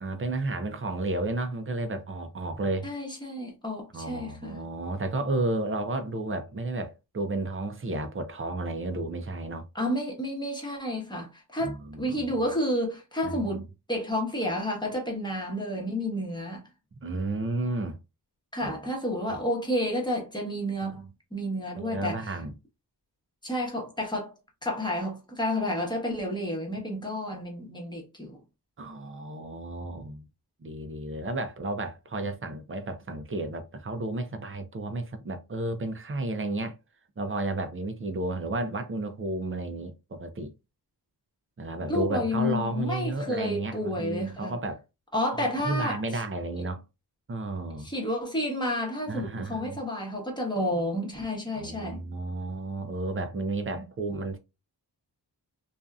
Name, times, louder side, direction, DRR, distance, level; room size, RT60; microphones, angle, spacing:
voice 1, 0.0-2.9 3.9-9.6 11.6-12.4 13.2-13.6 17.0-18.0 18.6-18.8 19.3-19.4 20.8-20.9 21.8-22.5 28.8-30.3 30.6-36.8 37.2-40.5 41.6-44.8 45.4-46.8 47.3-47.9 49.1-49.8 51.5-54.4, right 2 dB, 30° right, 0.6 m, -32 dB
voice 2, 2.8-4.6 9.7-16.6 18.5-22.4 23.4-24.3 24.6-28.4 41.9-44.5 45.1-46.0 47.8-52.0, left 1 dB, 10° left, 1.1 m, -30 dB
2.7 x 2.4 x 2.3 m
wide cardioid pair, 80°, 41 cm